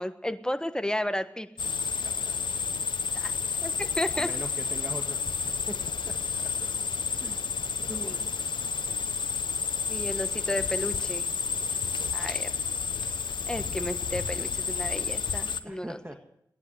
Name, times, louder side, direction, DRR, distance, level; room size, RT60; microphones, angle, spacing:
voice 1, 0.0-1.5 3.1-3.3 3.6-4.3 7.9-8.2 9.9-11.3 12.1-12.5 13.5-16.0, left 1 dB, 10° left, 9 dB, 1.4 m, -33 dB
sound 1, 1.6-15.6, left 5 dB, 85° left, 0.8 m, -30 dB
voice 2, 1.8-2.5 4.1-6.7 7.2-8.4 11.5-12.1 15.6-16.2, right 1 dB, 20° right, 4 dB, 1.8 m, -43 dB
16.5 x 10.5 x 8.1 m, 0.78 s
cardioid pair, 45°, 8 cm